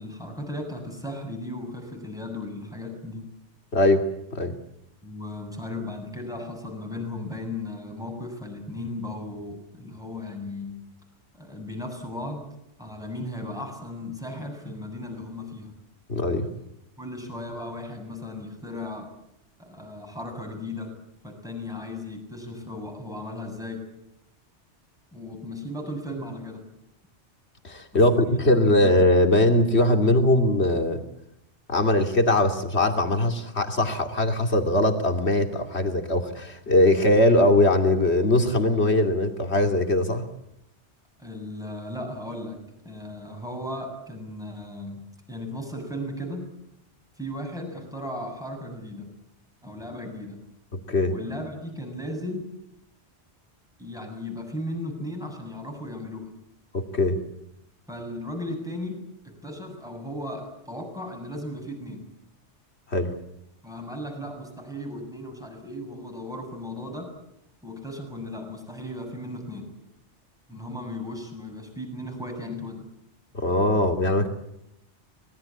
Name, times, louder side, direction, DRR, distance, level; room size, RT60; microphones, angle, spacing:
voice 1, 0.0-3.3 5.0-10.8 11.3-12.5 12.8-15.7 17.0-19.1 19.6-20.9 21.2-23.9 25.1-26.6 28.2-28.4 41.2-46.5 47.2-49.1 49.6-50.4 51.1-52.5 53.8-56.3 57.9-62.0 63.6-67.2 67.6-69.7 70.5-72.8, left 1 dB, 5° right, 3 dB, 7.4 m, -36 dB
voice 2, 3.7-4.1 4.3-4.5 16.1-16.5 27.6-31.0 31.7-40.3 50.7-51.1 56.7-57.2 62.9-63.1 73.3-74.3, left 1 dB, 65° left, 5 dB, 2.9 m, -21 dB
25.5 x 20.5 x 8.6 m, 0.82 s
omnidirectional pair, 1.2 m